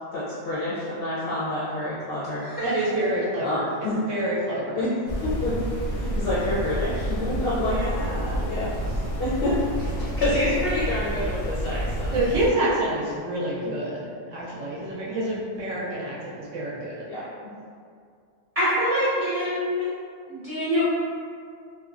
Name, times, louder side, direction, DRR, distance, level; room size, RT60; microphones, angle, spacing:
voice 1, 0.1-2.4 3.4-4.0 4.7-4.9 5.2-5.6 5.9-12.1 17.0-17.5, left 1 dB, 60° left, -10 dB, 0.6 m, -28 dB
voice 2, 2.6-3.7 4.1-4.8 12.1-17.1, right 1 dB, 70° right, -5 dB, 0.9 m, -27 dB
sound 1, 5.1-12.5, right 1 dB, 85° left, 1.0 m, -29 dB
voice 3, 18.6-19.9 20.3-20.9, equal, 40° right, -12 dB, 0.5 m, -24 dB
2.7 x 2.1 x 2.4 m, 2.2 s
omnidirectional pair, 1.4 m